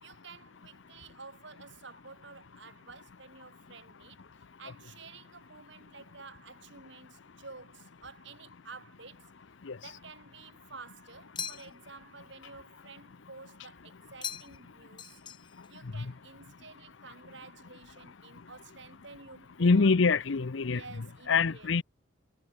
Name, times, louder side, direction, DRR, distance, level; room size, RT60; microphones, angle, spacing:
voice 1, 0.0-9.3 9.8-15.2 15.7-19.9 20.7-21.7, right 4 dB, 65° right, 2.9 m, -51 dB
sound 1, 11.4-12.0 14.2-14.7 15.0-15.7, left 8 dB, 25° left, 0.6 m, -40 dB
voice 2, 19.6-21.8, left 4 dB, 70° left, 0.7 m, -25 dB
head